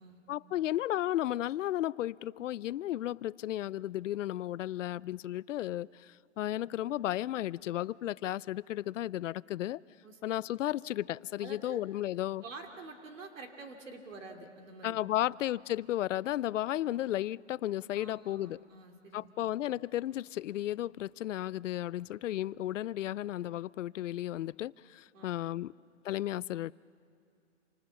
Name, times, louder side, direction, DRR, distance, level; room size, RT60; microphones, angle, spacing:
voice 1, 0.3-9.8 10.2-12.4 14.8-18.6 19.1-25.7 26.0-26.7, left 13 dB, 75° left, 21 dB, 0.5 m, -34 dB
voice 2, 11.4-11.8 12.4-15.0 17.9-19.5 25.1-25.3, right 3 dB, 90° right, 4 dB, 2.9 m, -48 dB
27.5 x 25.0 x 7.2 m, 2.4 s
hypercardioid pair, 150°, 37 cm